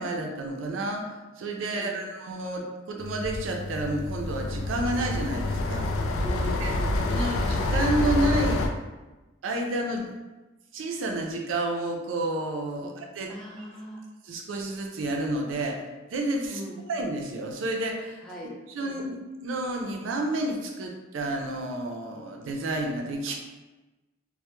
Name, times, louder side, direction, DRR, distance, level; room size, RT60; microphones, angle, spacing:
voice 1, 0.0-5.9 6.6-6.7 7.1-8.7 9.4-10.1 10.7-13.3 14.3-15.8 16.1-16.6 16.9-18.2 18.7-23.3, right 2 dB, 75° right, 2 dB, 0.4 m, -30 dB
voice 2, 1.7-2.1 6.2-7.4 12.8-12.9 13.3-14.1 16.5-16.8 18.2-19.0, equal, 5° left, -6 dB, 0.4 m, -40 dB
sound 1, 3.0-8.7, left 2 dB, 90° left, 0.3 m, -28 dB
2.1 x 2.0 x 2.9 m, 1.1 s
head